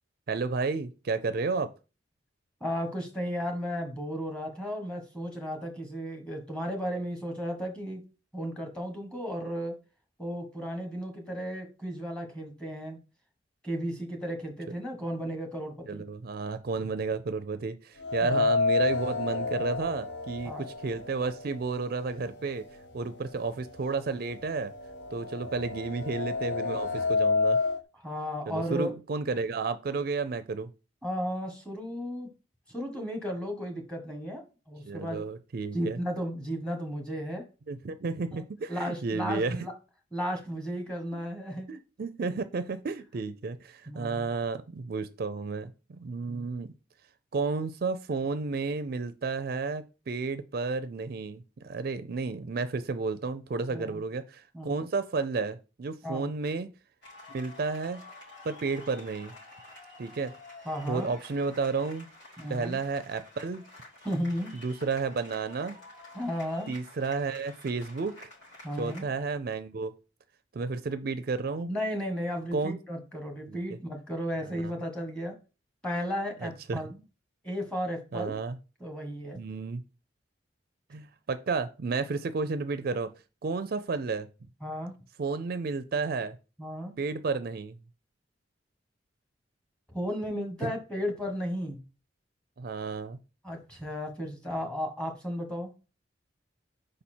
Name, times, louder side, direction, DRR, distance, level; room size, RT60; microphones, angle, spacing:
voice 1, 0.3-1.7 15.9-22.6 22.9-24.7 25.1-27.6 28.5-30.7 34.9-36.0 37.7-39.6 41.7-45.7 46.0-46.7 47.3-56.7 57.3-58.0 58.4-59.3 60.0-60.3 60.9-62.1 62.5-63.6 64.5-65.8 66.7-68.3 68.8-70.0 70.5-71.7 72.5-72.8 73.5-73.6 74.4-74.7 76.4-76.8 78.1-78.6 79.4-79.8 80.9-83.1 83.4-84.3 85.2-86.4 87.0-87.8 90.6-90.7 92.6-93.2, right 4 dB, 55° right, 11 dB, 0.4 m, -32 dB
voice 2, 2.6-8.0 8.3-9.8 10.2-13.0 13.6-16.0 18.2-18.5 20.4-20.6 28.0-28.9 31.0-32.3 32.7-35.2 35.7-37.5 38.3-38.4 38.7-39.7 40.1-41.7 43.9-44.3 46.3-46.5 53.7-54.0 54.5-54.7 56.0-56.2 60.6-61.1 62.4-62.8 64.0-64.5 66.1-66.7 68.6-69.1 71.7-75.4 75.8-77.0 77.4-78.3 78.8-79.4 84.6-84.9 86.6-86.9 89.9-91.8 93.4-95.7, equal, 5° left, 3 dB, 1.4 m, -34 dB
sound 1, 18.0-22.1 22.4-22.5 23.5-23.6 24.0-27.8, left 4 dB, 70° left, 0.7 m, -29 dB
sound 2, 57.0-69.0, left 2 dB, 90° left, 3.6 m, -50 dB
5.1 x 4.2 x 4.3 m, 0.32 s
head